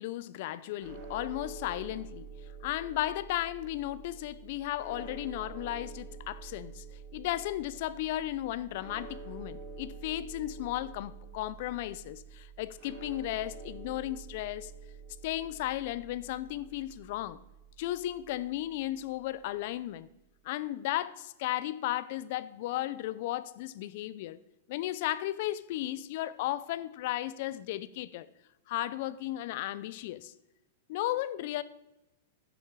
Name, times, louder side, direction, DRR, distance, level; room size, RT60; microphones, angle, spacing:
voice 1, 0.0-2.3 2.6-6.8 7.1-14.7 15.2-17.4 17.8-20.1 20.4-24.4 24.7-28.3 28.7-30.3 30.9-31.6, left 14 dB, 50° left, 0.5 m, -35 dB
sound 1, 0.8-19.0, right 4 dB, 35° right, 3.5 m, -47 dB
10.0 x 7.3 x 4.7 m
hypercardioid pair, 145°, 0 cm